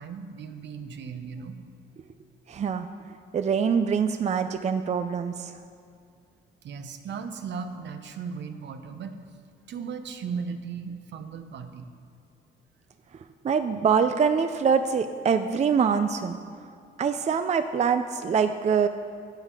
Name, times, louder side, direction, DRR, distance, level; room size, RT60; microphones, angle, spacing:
voice 1, 0.0-1.6 6.6-9.2 9.7-11.9, right 6 dB, 65° right, 8 dB, 0.9 m, -36 dB
voice 2, 2.5-2.9 3.3-5.6 13.1-16.4 17.0-18.9, right 6 dB, 35° right, 9 dB, 0.5 m, -24 dB
13.0 x 8.4 x 4.8 m, 2.4 s
cardioid pair, 90°, 20 cm